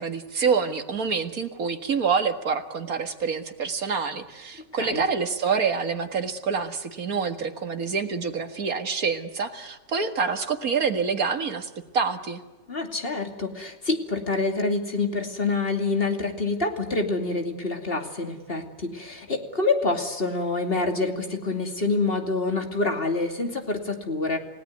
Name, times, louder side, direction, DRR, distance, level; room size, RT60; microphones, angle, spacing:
voice 1, 0.0-12.4, right 5 dB, 55° right, 7 dB, 2.2 m, -27 dB
voice 2, 12.7-24.4, left 3 dB, 30° left, 4 dB, 2.9 m, -27 dB
29.5 x 17.5 x 9.5 m, 1.2 s
omnidirectional pair, 1.8 m